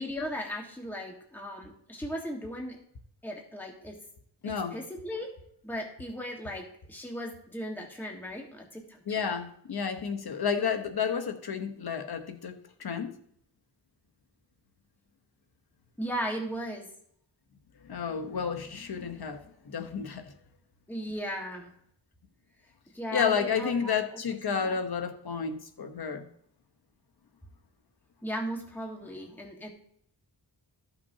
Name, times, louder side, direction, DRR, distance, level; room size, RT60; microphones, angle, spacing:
voice 1, 0.0-2.8 3.2-4.0 4.7-5.3 5.6-9.3 16.0-16.9 20.9-21.7 22.9-24.2 24.5-24.8 28.2-29.7, equal, 5° left, 1.5 m, -37 dB
voice 2, 4.4-4.8 9.1-13.1 17.8-20.3 23.1-26.3, left 6 dB, 60° left, 1.1 m, -31 dB
14.5 x 6.0 x 2.8 m
wide cardioid pair, 80°, 43 cm